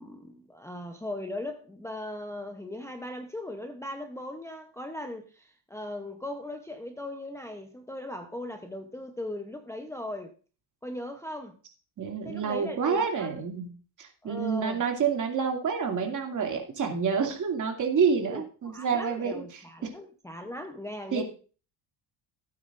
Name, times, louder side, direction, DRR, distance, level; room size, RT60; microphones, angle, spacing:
voice 1, 0.0-10.3 10.8-11.6 12.2-13.4 14.2-14.8 18.3-21.2, left 1 dB, 5° left, 0.8 m, -38 dB
voice 2, 12.0-13.7 14.0-19.6 21.1-21.2, right 6 dB, 40° right, 2.6 m, -28 dB
16.5 x 9.2 x 2.6 m
cardioid pair, 130°, 46 cm